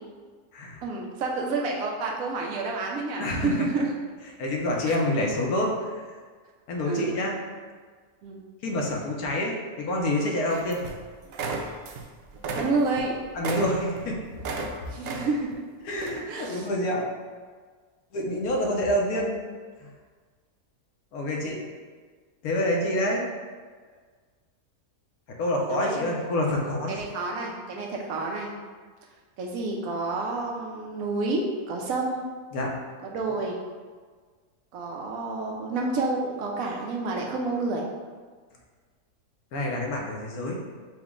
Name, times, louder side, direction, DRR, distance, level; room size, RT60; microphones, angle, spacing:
voice 1, 0.8-4.0 4.9-5.0 6.8-7.2 8.2-8.4 12.5-13.2 14.9-15.6 16.3-16.7 25.7-26.1 26.9-28.5 29.4-32.3 33.0-33.6 34.7-37.9, right 3 dB, 70° right, -1 dB, 1.0 m, -29 dB
voice 2, 3.2-3.7 4.4-6.0 6.7-7.3 8.6-10.8 13.3-14.2 15.8-17.1 18.1-19.4 19.8-19.9 21.1-21.6 22.4-23.2 25.4-27.0 32.5-32.7 39.5-40.6, left 1 dB, 75° left, -1 dB, 1.2 m, -27 dB
sound 1, 10.5-11.0 11.3-12.1 12.3-14.7 15.0-15.6 16.0-16.2, right 3 dB, 90° right, 0.5 m, -33 dB
5.9 x 2.1 x 3.6 m, 1.5 s
omnidirectional pair, 1.6 m